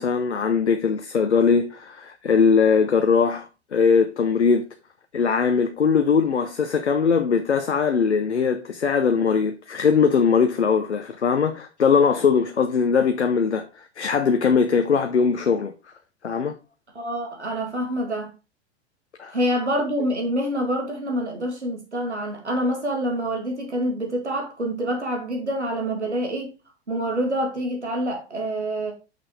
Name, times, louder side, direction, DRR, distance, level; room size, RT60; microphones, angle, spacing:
voice 1, 0.0-4.7 5.1-15.7 16.2-16.6 19.2-19.4, left 5 dB, 85° left, 0.7 m, -20 dB
voice 2, 16.9-18.3 19.3-26.5 26.9-28.9, equal, 90° right, 2.2 m, -26 dB
6.2 x 5.5 x 3.8 m
figure-of-eight pair, 95°, 33 cm